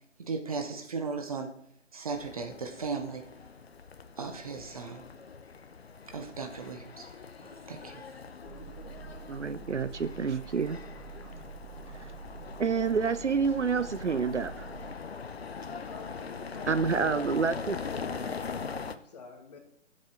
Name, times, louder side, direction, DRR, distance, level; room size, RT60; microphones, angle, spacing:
voice 1, 0.2-1.5 1.9-3.2 4.2-5.1 6.1-7.1 7.7-8.0, right 4 dB, 30° right, 1.1 m, -36 dB
sound 1, 2.1-19.0, left 5 dB, 55° left, 0.8 m, -42 dB
sound 2, 8.4-14.9, right 8 dB, ahead, 1.1 m, -47 dB
voice 2, 9.3-10.8 12.6-14.7 16.7-17.8, right 5 dB, 70° right, 0.7 m, -28 dB
voice 3, 15.9-17.4 18.5-19.6, left 4 dB, 35° left, 1.9 m, -48 dB
16.5 x 7.8 x 3.8 m
figure-of-eight pair, 145°, 37 cm